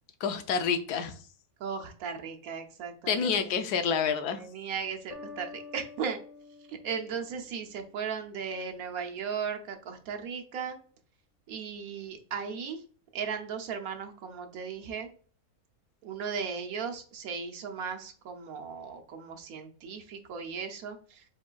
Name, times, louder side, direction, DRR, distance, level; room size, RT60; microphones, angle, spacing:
voice 1, 0.2-1.1 3.1-4.4, left 6 dB, 90° left, 8 dB, 1.2 m, -28 dB
voice 2, 1.6-3.5 4.4-6.2 6.7-10.8 11.5-12.8 13.1-15.1 16.0-21.2, right 6 dB, 70° right, 4 dB, 1.2 m, -37 dB
sound 1, 5.1-7.9, left 4 dB, 15° right, 0.7 m, -48 dB
4.6 x 4.4 x 2.4 m, 0.43 s
omnidirectional pair, 1.6 m